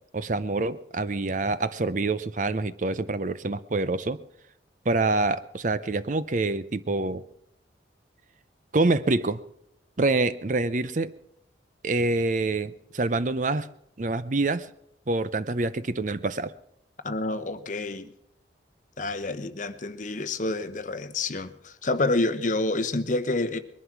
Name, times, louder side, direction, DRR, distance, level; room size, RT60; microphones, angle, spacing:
voice 1, 0.1-4.2 4.9-7.2 8.7-9.4 10.0-11.1 11.8-13.7 14.0-14.7 15.1-16.5, right 2 dB, 45° right, 15 dB, 0.6 m, -26 dB
voice 2, 17.0-18.1 19.0-23.6, left 2 dB, 45° left, 10 dB, 1.0 m, -28 dB
21.0 x 11.5 x 6.0 m, 0.73 s
head